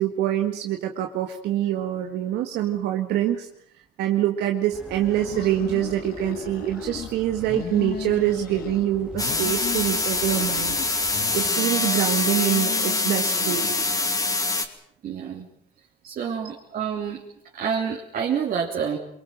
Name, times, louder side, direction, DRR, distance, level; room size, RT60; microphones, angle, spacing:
voice 1, 0.0-3.5 4.0-10.8 11.3-13.7, right 12 dB, 80° right, 4 dB, 1.9 m, -25 dB
sound 1, 4.7-11.5, right 1 dB, 5° right, 3.1 m, -44 dB
sound 2, 5.0-7.1 7.4-8.9 9.1-10.9 11.1-14.3, left 9 dB, 65° left, 1.9 m, -37 dB
sound 3, 9.2-14.6, left 3 dB, 20° left, 2.6 m, -24 dB
voice 2, 15.0-15.5 16.0-17.2 17.5-19.0, right 7 dB, 55° right, -1 dB, 3.5 m, -28 dB
24.0 x 22.5 x 7.6 m, 0.68 s
cardioid pair, 110°, 17 cm